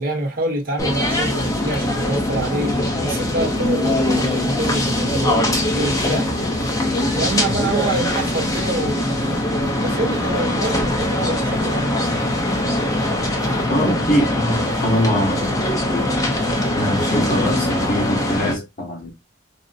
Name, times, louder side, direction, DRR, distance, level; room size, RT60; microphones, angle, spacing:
voice 1, 0.0-6.3 7.1-9.1 9.8-12.1, right 1 dB, 50° right, 0.9 m, -26 dB
sound 1, 0.8-18.5, left 1 dB, 20° left, 0.7 m, -21 dB
voice 2, 13.7-15.6 16.8-19.3, equal, 45° left, 1.3 m, -23 dB
4.1 x 2.1 x 2.5 m
head